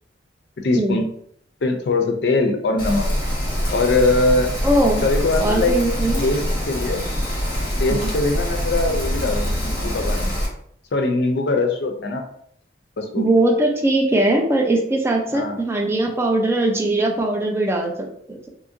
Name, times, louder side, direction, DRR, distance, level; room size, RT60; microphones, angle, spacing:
voice 1, 0.6-1.1 1.6-3.1 3.7-4.5 5.0-5.7 6.2-6.4 6.7-7.0 7.8-10.3 10.9-12.2 13.0-13.3 15.3-15.6, left 2 dB, 65° left, 4 dB, 0.4 m, -21 dB
Rain, 2.8-10.5, equal, 25° left, 1.0 m, -24 dB
voice 2, 4.6-5.0 5.4-6.2 7.9-8.1 13.1-18.5, right 1 dB, 15° right, 1 dB, 0.4 m, -20 dB
2.8 x 2.6 x 2.6 m, 0.66 s
head